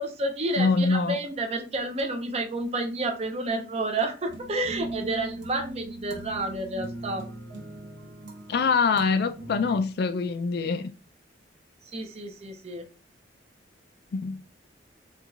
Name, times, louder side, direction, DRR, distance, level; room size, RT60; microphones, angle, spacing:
voice 1, 0.0-7.2 11.9-12.8, right 2 dB, 35° right, 0.6 m, -30 dB
voice 2, 0.6-1.2 8.5-10.9 14.1-14.4, left 4 dB, 60° left, 0.4 m, -24 dB
sound 1, 4.3-9.8, right 1 dB, 90° right, 1.1 m, -39 dB
4.4 x 2.4 x 2.4 m
head